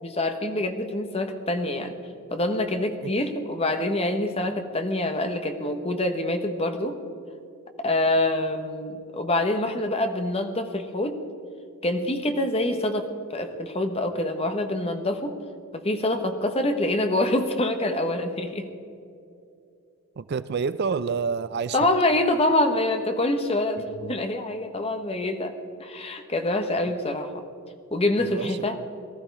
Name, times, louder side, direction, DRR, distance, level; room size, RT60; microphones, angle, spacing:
voice 1, 0.0-2.0 2.3-7.0 7.8-11.2 11.8-15.4 15.7-18.7 21.7-25.5 25.8-27.3 27.9-28.8, left 1 dB, 25° left, 6 dB, 1.1 m, -26 dB
voice 2, 20.2-21.9 24.0-24.1 28.2-28.7, right 5 dB, 45° right, 15 dB, 0.4 m, -29 dB
19.0 x 13.5 x 4.7 m, 2.5 s
head